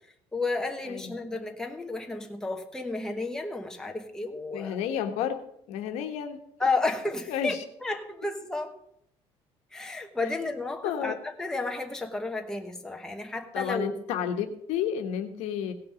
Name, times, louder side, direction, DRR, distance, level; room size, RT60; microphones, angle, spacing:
voice 1, 0.3-4.8 6.6-7.5 7.8-8.8 9.7-14.0, left 3 dB, 5° left, 3 dB, 1.0 m, -32 dB
voice 2, 4.5-6.4 7.3-7.6 10.8-11.1 13.5-15.7, left 9 dB, 85° left, 6 dB, 1.3 m, -31 dB
17.5 x 5.9 x 5.1 m, 0.74 s
cardioid pair, 155°, 11 cm